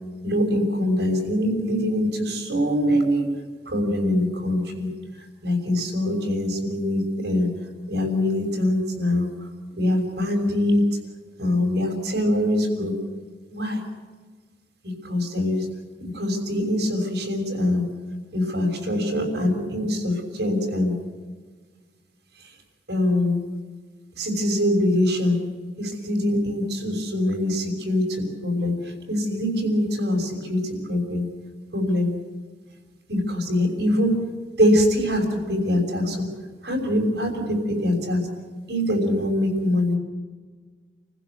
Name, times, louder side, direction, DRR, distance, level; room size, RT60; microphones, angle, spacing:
voice 1, 0.2-3.3 3.7-4.9 5.4-7.5 7.9-9.3 9.8-10.8 11.4-12.9 13.5-13.8 15.0-15.7 16.0-17.9 18.3-20.9 22.9-23.4 24.2-25.4 25.8-30.6 30.9-31.2 31.7-32.1 33.1-34.2 34.6-36.3 36.6-38.2 38.7-40.0, left 1 dB, 70° right, 2 dB, 6.1 m, -23 dB
29.0 x 16.0 x 8.3 m, 1.5 s
head